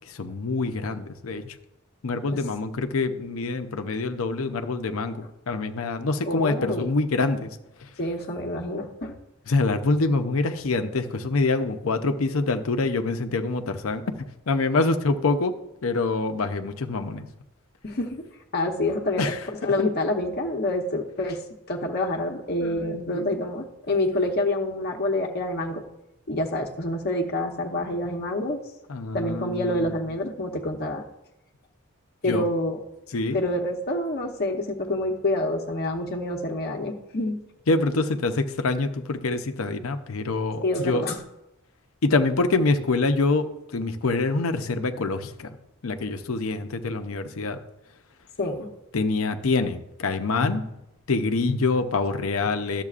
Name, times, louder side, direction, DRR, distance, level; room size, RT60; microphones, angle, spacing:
voice 1, 0.1-1.5 2.0-7.9 9.5-14.0 14.5-15.5 15.8-17.3 19.2-19.5 22.6-23.3 28.9-29.9 32.3-32.5 33.1-33.4 37.7-41.0 42.0-43.4 43.7-45.6 45.8-47.6 48.9-50.7 51.1-52.8, left 3 dB, 80° left, 7 dB, 0.7 m, -25 dB
voice 2, 6.3-6.9 8.0-9.1 17.8-18.2 18.5-19.3 19.6-21.4 21.7-25.8 26.3-28.6 29.1-31.0 32.2-32.8 33.3-37.4 40.6-41.2 48.4-48.7, left 1 dB, 50° left, 2 dB, 0.8 m, -27 dB
12.0 x 7.4 x 2.5 m, 0.88 s
head